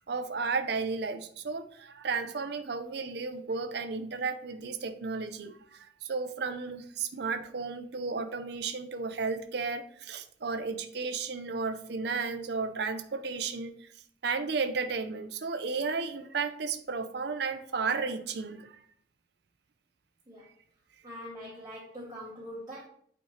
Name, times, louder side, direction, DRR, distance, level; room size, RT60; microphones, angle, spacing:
voice 1, 0.1-13.9 14.2-18.8, right 4 dB, 55° right, 8 dB, 0.5 m, -33 dB
voice 2, 21.0-22.9, equal, 20° right, -6 dB, 1.1 m, -43 dB
8.8 x 4.3 x 3.1 m, 0.62 s
head